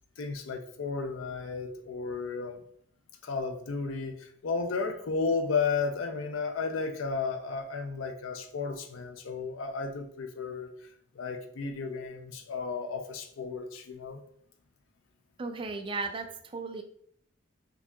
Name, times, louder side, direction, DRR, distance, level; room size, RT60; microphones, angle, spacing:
voice 1, 0.2-2.6 3.2-10.7 11.1-14.2, left 4 dB, 85° left, 5 dB, 0.5 m, -33 dB
voice 2, 15.4-16.8, right 3 dB, 25° right, 6 dB, 0.3 m, -35 dB
4.6 x 2.7 x 2.3 m, 0.66 s
head